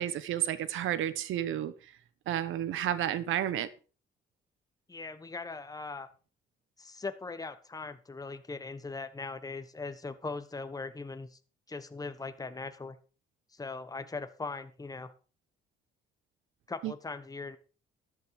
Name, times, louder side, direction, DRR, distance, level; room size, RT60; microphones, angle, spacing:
voice 1, 0.0-1.9 2.3-3.7 16.8-16.9, right 11 dB, 85° right, 15 dB, 1.2 m, -31 dB
voice 2, 4.9-6.1 6.8-11.4 11.7-13.0 13.5-15.1 16.7-17.6, left 3 dB, 20° left, 10 dB, 1.3 m, -40 dB
13.0 x 9.7 x 4.9 m, 0.36 s
cardioid pair, 90°, 20 cm